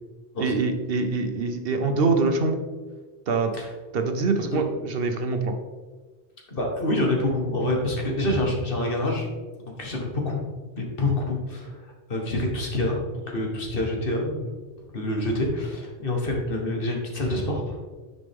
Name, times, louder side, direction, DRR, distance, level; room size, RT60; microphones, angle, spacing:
voice 1, 0.4-2.6 3.3-3.6 3.9-5.6, right 3 dB, 65° right, 6 dB, 0.9 m, -24 dB
voice 2, 6.5-9.3 9.8-10.4 10.8-13.0 13.3-14.5 14.9-17.8, left 1 dB, 55° left, 0 dB, 1.6 m, -26 dB
9.8 x 5.2 x 3.5 m, 1.3 s
omnidirectional pair, 1.1 m